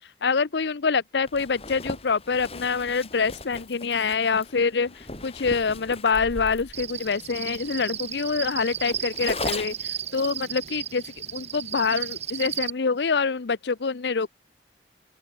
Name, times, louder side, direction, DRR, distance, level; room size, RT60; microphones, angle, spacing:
voice 1, 0.2-4.9 5.2-9.7 10.1-11.0 11.3-14.3, left 5 dB, 80° left, 0.7 m, -25 dB
Zipper (clothing), 1.3-10.0, left 2 dB, 35° left, 4.8 m, -38 dB
Cricket, 6.7-12.7, right 10 dB, 40° right, 2.3 m, -34 dB
open air
head